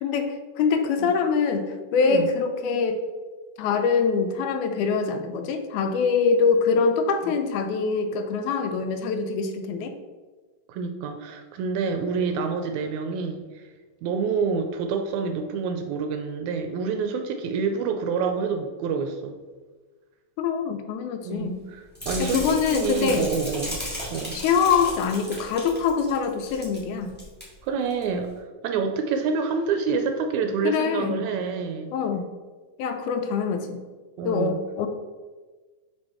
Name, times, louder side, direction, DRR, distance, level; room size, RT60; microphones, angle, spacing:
voice 1, 0.0-3.0 3.6-10.0 20.4-21.6 22.2-23.3 24.3-27.1 30.6-31.2 31.9-32.3 32.8-33.8 34.2-34.9, left 5 dB, 80° left, 7 dB, 1.9 m, -24 dB
voice 2, 2.0-2.3 7.2-7.3 10.7-13.6 14.0-19.3 21.2-23.8 24.1-24.4 27.6-31.9 34.2-34.6, right 5 dB, 80° right, 6 dB, 1.8 m, -27 dB
sound 1, 21.9-26.8 27.1-27.4 27.9-28.0, left 1 dB, 10° left, 0.5 m, -35 dB
5.2 x 5.1 x 3.5 m, 1.4 s
omnidirectional pair, 3.6 m